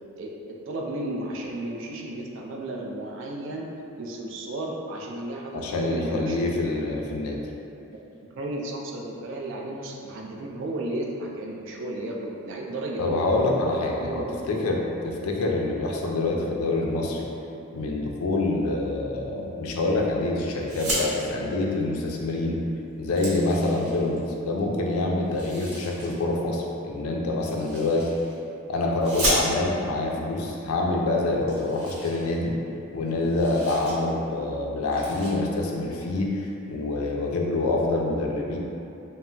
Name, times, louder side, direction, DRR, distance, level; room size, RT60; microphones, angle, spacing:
voice 1, 0.2-3.7 4.0-6.4 8.3-13.3 14.0-14.6, right 1 dB, 60° right, -1 dB, 0.3 m, -33 dB
voice 2, 5.5-7.4 13.0-14.8 15.0-17.3 17.7-22.6 23.0-28.1 28.7-32.5 32.9-36.4 36.7-38.6, left 2 dB, 80° left, 0 dB, 0.4 m, -26 dB
sound 1, 20.6-21.1 22.4-22.5 22.8-24.2 25.3-26.1 27.4-28.4 29.0-29.9 30.7-30.8 31.1-31.2 31.5-32.8 33.1-33.9 34.3-34.5 34.9-35.3, right 1 dB, 90° right, 0.9 m, -33 dB
2.1 x 2.0 x 3.7 m, 2.7 s
head